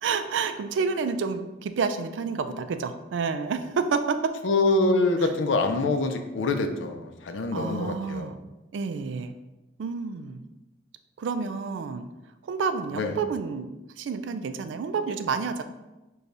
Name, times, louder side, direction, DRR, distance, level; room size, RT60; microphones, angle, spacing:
voice 1, 0.0-4.4 7.5-8.4 8.7-9.3 9.8-10.4 11.2-12.1 12.4-13.7 14.0-15.6, right 5 dB, 80° right, 9 dB, 0.3 m, -29 dB
voice 2, 4.4-8.3 12.9-13.1, left 2 dB, 85° left, 6 dB, 0.5 m, -25 dB
6.4 x 2.3 x 2.6 m, 1.0 s
head